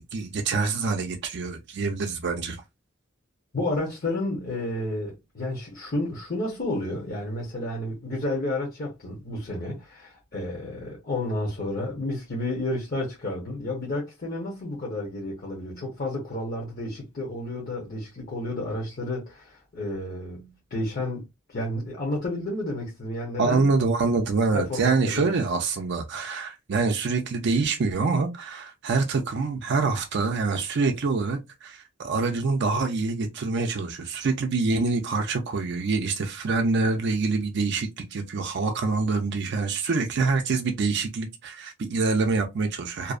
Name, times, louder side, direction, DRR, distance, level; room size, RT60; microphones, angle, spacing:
voice 1, 0.0-2.6 23.4-43.1, right 4 dB, 55° right, 0.4 m, -26 dB
voice 2, 3.5-21.2 21.5-23.7 24.5-25.3, left 1 dB, 45° left, 0.8 m, -31 dB
2.6 x 2.0 x 2.4 m
head